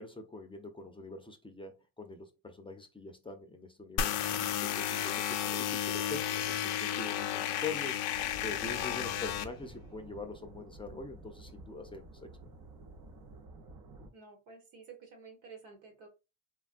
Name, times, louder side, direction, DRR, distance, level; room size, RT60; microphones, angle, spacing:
voice 1, 0.0-4.2 4.6-8.0 8.4-12.5, left 3 dB, 15° left, 0.5 m, -44 dB
sound 1, 4.0-9.4, left 10 dB, 75° left, 0.5 m, -33 dB
sound 2, 8.1-14.1, right 2 dB, 55° right, 0.8 m, -51 dB
voice 2, 14.1-16.1, right 5 dB, 80° right, 1.3 m, -52 dB
3.4 x 2.2 x 2.5 m
cardioid pair, 85°, 39 cm